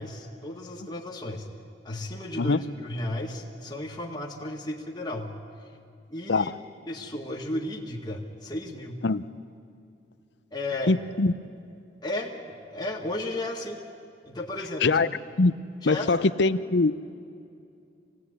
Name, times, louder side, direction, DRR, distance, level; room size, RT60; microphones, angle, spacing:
voice 1, 0.0-1.5 1.8-5.3 6.1-6.5 6.9-9.0 10.5-11.0 12.0-13.8 14.2-15.0 15.8-16.1, left 1 dB, 25° left, -3 dB, 1.9 m, -34 dB
voice 2, 10.9-11.3 14.8-15.1 15.4-15.5 15.9-17.0, left 3 dB, 75° left, 15 dB, 0.7 m, -22 dB
25.0 x 17.5 x 9.9 m, 2.5 s
head